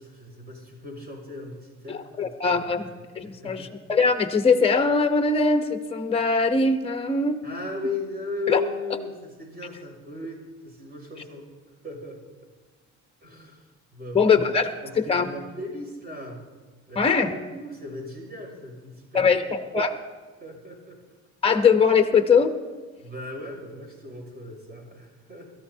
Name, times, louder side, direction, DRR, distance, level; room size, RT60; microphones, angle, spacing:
voice 1, 0.0-3.7 7.4-11.5 11.8-12.2 13.2-14.4 14.8-16.5 16.9-19.5 20.4-21.0 23.0-25.5, left 3 dB, 30° right, 1 dB, 6.2 m, -37 dB
voice 2, 1.9-2.8 3.1-7.4 8.5-8.6 14.1-14.7 15.0-15.3 17.0-17.3 19.1-19.4 19.7-20.0 21.4-22.5, left 5 dB, 20° left, 7 dB, 0.9 m, -21 dB
29.0 x 13.5 x 2.8 m, 1.4 s
cardioid pair, 90°, 30 cm